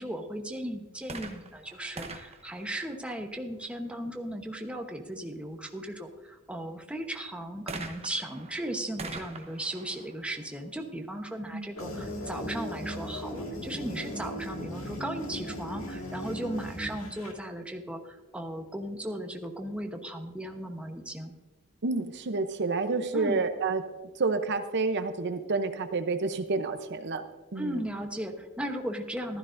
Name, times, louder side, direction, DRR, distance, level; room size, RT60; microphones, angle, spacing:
voice 1, 0.0-21.3 23.1-23.4 27.6-29.4, right 1 dB, 5° right, 3 dB, 1.0 m, -36 dB
sound 1, 1.1-3.6 7.7-11.3 12.1-12.2, right 3 dB, 30° right, 1.1 m, -44 dB
sound 2, 11.8-17.3, equal, 75° left, 2.1 m, -37 dB
voice 2, 21.8-23.8 24.1-27.2 27.5-27.8, right 3 dB, 55° right, 8 dB, 0.8 m, -29 dB
15.0 x 12.5 x 2.6 m, 1.1 s
head